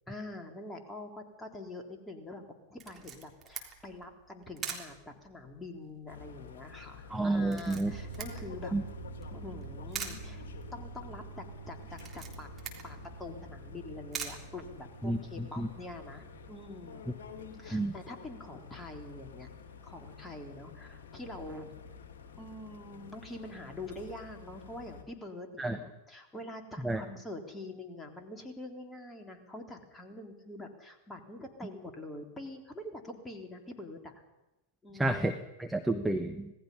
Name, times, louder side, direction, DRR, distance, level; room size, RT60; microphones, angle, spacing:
voice 1, 0.1-8.7 9.3-12.5 12.8-17.0 17.6-19.5 19.8-21.7 22.4-34.2 34.8-35.2, left 2 dB, 10° left, 3 dB, 3.6 m, -45 dB
Camera, 2.8-15.3, right 6 dB, 20° right, 3.5 m, -46 dB
sound 1, 6.1-25.0, left 7 dB, 55° left, 2.7 m, -49 dB
voice 2, 7.1-7.9 8.7-8.8 15.0-15.7 17.7-17.9 25.6-25.8 26.8-27.0 35.0-36.5, right 2 dB, 5° right, 7 dB, 1.1 m, -30 dB
sound 2, 7.8-19.9 20.3-20.4, right 6 dB, 85° right, 2.8 m, -49 dB
26.5 x 18.5 x 5.6 m, 0.98 s
figure-of-eight pair, 90°, 0 cm